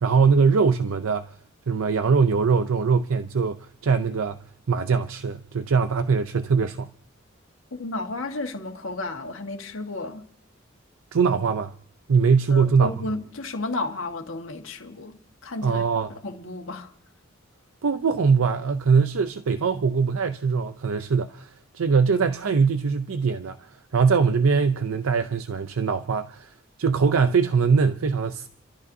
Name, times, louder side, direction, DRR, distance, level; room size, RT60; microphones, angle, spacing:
voice 1, 0.0-1.3 1.7-4.4 4.7-6.9 11.1-11.7 12.1-13.0 15.6-16.1 17.8-21.5 21.7-28.5, right 5 dB, 90° right, 0.5 m, -22 dB
voice 2, 7.7-10.3 12.5-15.8 16.1-16.9, left 2 dB, 80° left, 1.5 m, -33 dB
30.0 x 13.5 x 2.7 m
head